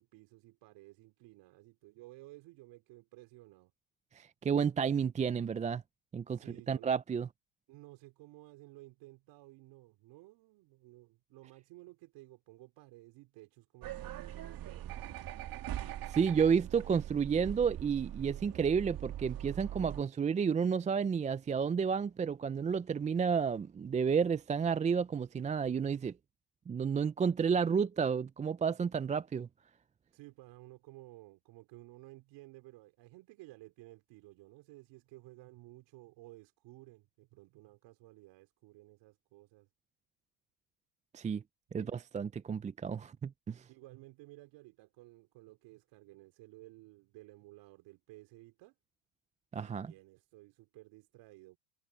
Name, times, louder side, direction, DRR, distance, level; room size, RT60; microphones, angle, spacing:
voice 1, 0.0-3.7 6.3-6.9 7.7-15.1 30.1-39.7 41.7-42.0 43.7-48.7 49.5-51.6, right 19 dB, 60° right, 3.2 m, -55 dB
voice 2, 4.1-5.8 6.1-6.4 6.7-7.3 15.8-26.1 26.7-29.5 41.1-41.4 41.7-43.6 49.5-49.9, right 6 dB, 15° right, 0.5 m, -31 dB
sound 1, 13.8-20.0, right 12 dB, 45° right, 2.8 m, -42 dB
supercardioid pair, 100°, 49 cm